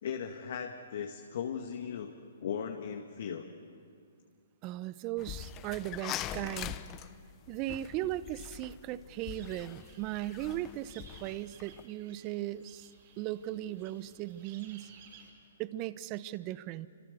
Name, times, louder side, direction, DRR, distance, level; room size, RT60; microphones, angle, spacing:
voice 1, 0.0-2.1 2.4-3.5, left 7 dB, 60° left, 3 dB, 1.9 m, -37 dB
voice 2, 4.6-6.8 7.5-12.9 13.2-14.9 15.6-16.9, right 14 dB, 30° right, 16 dB, 0.9 m, -37 dB
sound 1, 5.2-11.8, left 12 dB, 25° left, 0.9 m, -43 dB
sound 2, 9.1-15.3, right 6 dB, 50° right, 6.6 m, -57 dB
27.5 x 26.0 x 7.0 m, 2.3 s
hypercardioid pair, 140°, 0 cm